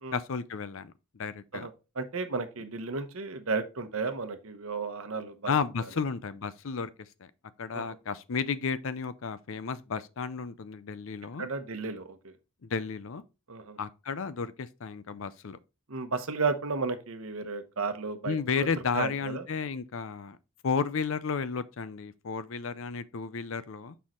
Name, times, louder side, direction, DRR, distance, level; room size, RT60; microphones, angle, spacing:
voice 1, 0.1-1.7 5.5-7.3 7.6-11.5 12.6-13.2 13.8-15.6 18.2-20.4 20.6-24.0, left 5 dB, 60° left, 0.5 m, -33 dB
voice 2, 2.0-5.5 7.7-7.8 11.4-12.3 13.5-13.8 15.9-18.7 18.9-19.4, right 4 dB, 70° right, 1.0 m, -33 dB
6.5 x 5.6 x 3.0 m
head